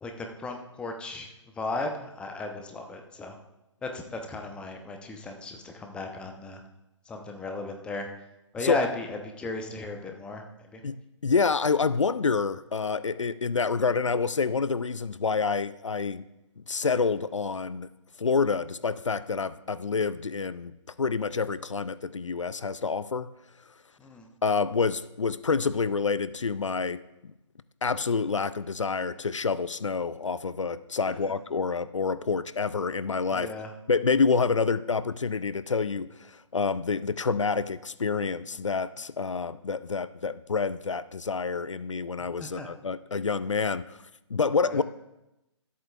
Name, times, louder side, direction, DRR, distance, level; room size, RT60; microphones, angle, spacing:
voice 1, 0.0-3.4 3.8-6.6 7.1-8.1 8.5-10.4 10.7-10.8 24.0-24.3 33.3-33.7 42.4-42.7 44.7-44.8, left 2 dB, 5° left, 4 dB, 0.8 m, -35 dB
voice 2, 10.8-16.3 16.7-17.9 18.2-20.7 21.0-23.3 24.4-27.0 27.8-33.5 33.9-44.0 44.3-44.8, left 5 dB, 80° left, 16 dB, 0.5 m, -27 dB
23.5 x 8.3 x 2.4 m, 0.92 s
figure-of-eight pair, 135°, 16 cm